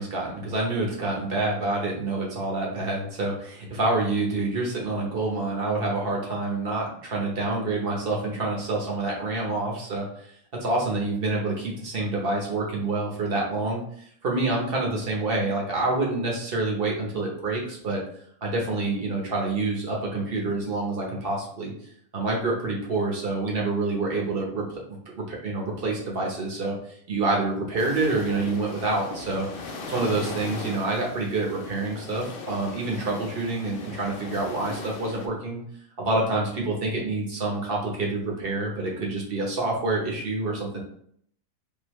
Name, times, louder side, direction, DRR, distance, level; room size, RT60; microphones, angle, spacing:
voice 1, 0.0-10.3 10.6-13.8 14.2-18.0 18.4-21.7 22.1-26.8 27.1-29.5 29.9-35.6 36.0-40.8, right 2 dB, 40° right, -2 dB, 1.0 m, -27 dB
sound 1, 27.8-35.3, left 3 dB, 70° left, 0.5 m, -38 dB
3.8 x 2.8 x 3.0 m, 0.64 s
omnidirectional pair, 1.7 m